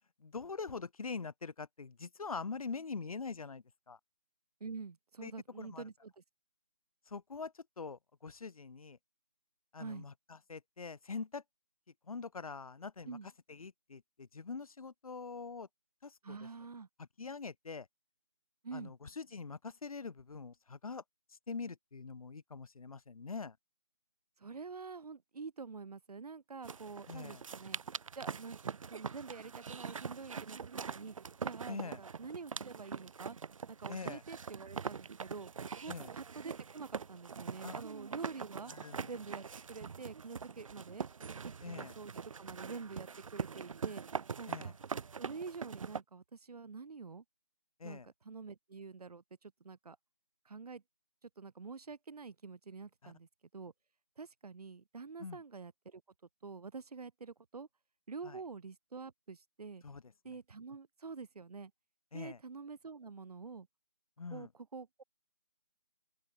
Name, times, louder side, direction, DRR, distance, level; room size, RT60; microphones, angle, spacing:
voice 1, 0.2-4.0 5.2-5.3 5.6-5.9 7.1-9.0 9.7-11.4 12.0-13.2 13.5-15.7 16.0-16.4 17.0-17.9 18.7-21.0 21.3-23.6 27.1-27.4 31.7-32.0 33.9-34.2 35.9-36.1 37.6-37.8 38.7-39.0 41.6-41.9 44.5-44.7 47.8-48.1 53.0-53.1 55.2-55.4 58.2-58.4 59.8-60.4 62.1-62.4 64.2-64.5, left 4 dB, 70° left, 1.0 m, -44 dB
voice 2, 4.6-6.1 9.8-10.1 13.0-13.3 16.2-16.9 18.6-18.9 24.4-27.8 28.1-30.6 30.9-31.1 31.4-33.4 33.7-35.5 35.8-38.7 39.1-41.1 41.5-44.0 44.4-44.7 45.2-47.2 47.8-50.0 50.4-50.8 51.2-53.3 53.5-53.7 54.2-56.0 56.4-57.7 58.1-59.8 60.2-61.7 62.1-63.7 64.3-64.9, right 4 dB, 85° right, 0.9 m, -47 dB
sound 1, 26.6-46.0, right 6 dB, 60° right, 0.4 m, -43 dB
open air
figure-of-eight pair, 170°, 19 cm